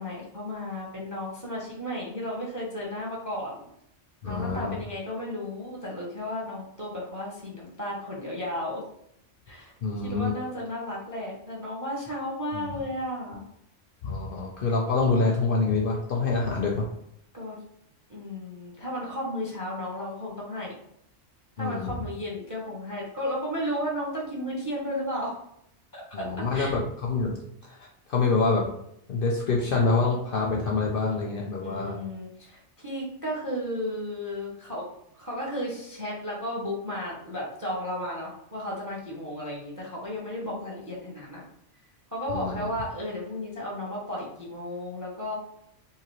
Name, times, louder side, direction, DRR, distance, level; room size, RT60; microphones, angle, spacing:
voice 1, 0.0-3.6 4.2-8.8 9.5-9.7 10.0-13.5 17.3-17.6 18.1-20.7 21.6-25.4 25.9-26.2 26.5-26.7 31.6-34.9 35.2-41.4 42.1-45.3, equal, 25° right, -3 dB, 0.4 m, -34 dB
voice 2, 4.2-4.8 9.8-10.4 12.5-12.8 14.0-16.9 21.6-22.0 26.1-27.4 27.6-28.7 29.1-32.0 42.3-42.7, left 3 dB, 60° left, -1 dB, 0.6 m, -26 dB
2.8 x 2.6 x 3.0 m, 0.73 s
omnidirectional pair, 1.3 m